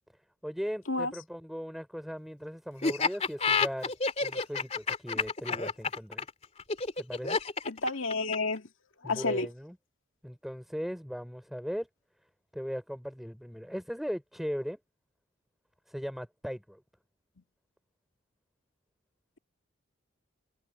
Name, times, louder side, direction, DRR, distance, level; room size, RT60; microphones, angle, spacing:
voice 1, 0.4-6.2 7.0-7.4 9.0-9.7 10.2-11.9 12.5-14.8 15.9-16.8, equal, ahead, 5.1 m, -38 dB
Laughter, 2.8-8.6, left 4 dB, 30° left, 2.9 m, -29 dB
voice 2, 7.7-8.7 9.0-9.5, left 3 dB, 70° left, 2.3 m, -30 dB
head